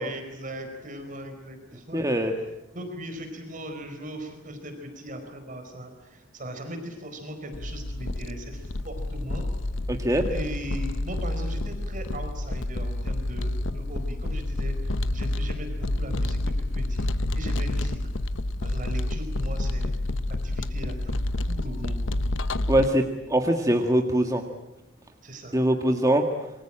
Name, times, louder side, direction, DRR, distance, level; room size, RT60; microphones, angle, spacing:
voice 1, 0.0-9.4 10.3-18.1 18.6-19.9 20.4-21.2 21.5-22.1 25.2-25.6, right 1 dB, 45° right, 6 dB, 4.6 m, -39 dB
voice 2, 1.9-2.3 9.9-10.2 22.7-24.4 25.5-26.2, right 1 dB, 20° right, 4 dB, 1.7 m, -22 dB
sound 1, 7.5-22.9, left 1 dB, 90° left, 1.1 m, -29 dB
27.0 x 24.0 x 8.8 m, 0.96 s
head